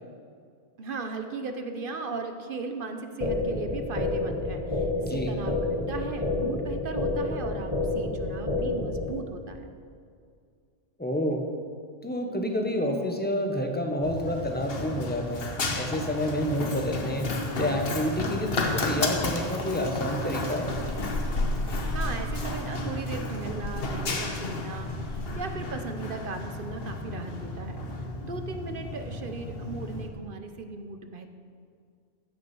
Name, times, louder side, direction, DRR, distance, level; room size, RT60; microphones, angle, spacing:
voice 1, 0.8-5.6 5.9-9.7 21.9-27.8 28.2-31.3, right 4 dB, 55° right, 7 dB, 0.9 m, -37 dB
sound 1, 3.2-9.2, left 2 dB, 30° left, 1.8 m, -29 dB
voice 2, 11.0-11.4 12.0-15.4 15.7-17.3 17.6-20.7, equal, 10° left, 3 dB, 1.1 m, -29 dB
Run, 14.0-30.1, left 2 dB, 55° left, 1.3 m, -32 dB
15.0 x 6.2 x 6.1 m, 2.2 s
omnidirectional pair, 1.2 m